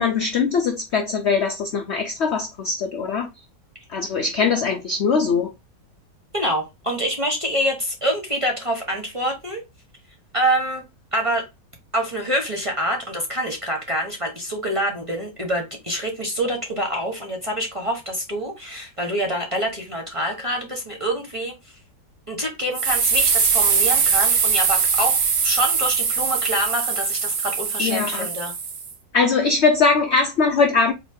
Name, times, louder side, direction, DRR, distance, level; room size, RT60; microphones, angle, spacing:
voice 1, 0.0-3.3 3.9-5.5 27.8-28.3 29.1-30.9, left 4 dB, 75° left, 0.6 m, -21 dB
voice 2, 6.3-9.6 10.3-10.8 11.1-11.4 11.9-21.5 22.3-28.5, equal, 25° right, 0.9 m, -26 dB
sound 1, 22.7-28.9, right 6 dB, 55° right, 1.2 m, -21 dB
4.1 x 2.7 x 4.5 m
omnidirectional pair, 2.0 m